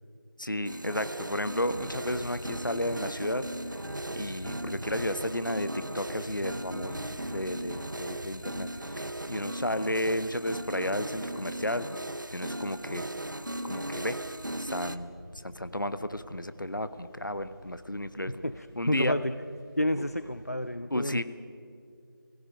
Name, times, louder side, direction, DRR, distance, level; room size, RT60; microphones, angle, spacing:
voice 1, 0.4-3.5 4.1-11.9 12.3-13.0 13.6-14.2 14.6-15.1 15.4-18.4 18.8-19.2 20.0-20.1 20.9-21.2, left 1 dB, 65° left, 12 dB, 1.1 m, -33 dB
sound 1, 0.6-15.0, right 1 dB, 60° right, 0.9 m, -37 dB
Thunder / Rain, 1.6-20.7, equal, 15° right, 5.8 m, -49 dB
voice 2, 18.4-19.3 19.8-21.2, left 1 dB, 45° left, 12 dB, 0.5 m, -30 dB
29.0 x 17.5 x 5.1 m, 2.4 s
figure-of-eight pair, 175°, 12 cm